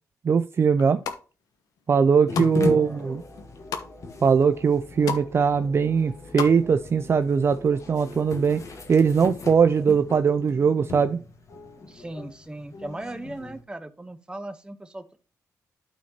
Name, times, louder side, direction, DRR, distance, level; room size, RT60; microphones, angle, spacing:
voice 1, 0.2-1.0 1.9-3.2 4.2-8.6 8.9-11.2, right 6 dB, 40° right, 10 dB, 0.4 m, -21 dB
sound 1, 0.7-1.2 1.8-2.5 2.9-3.9 4.4-4.5 4.7-5.3 5.6-6.5 6.8-6.9, left 7 dB, 90° left, 1.0 m, -33 dB
sound 2, 2.3-13.6, left 3 dB, 55° left, 1.6 m, -37 dB
sound 3, 2.6-9.7, left 1 dB, 35° left, 2.3 m, -49 dB
voice 2, 11.8-15.2, right 1 dB, 15° right, 9 dB, 1.0 m, -38 dB
12.5 x 4.3 x 2.9 m, 0.35 s
cardioid pair, 105°, 6 cm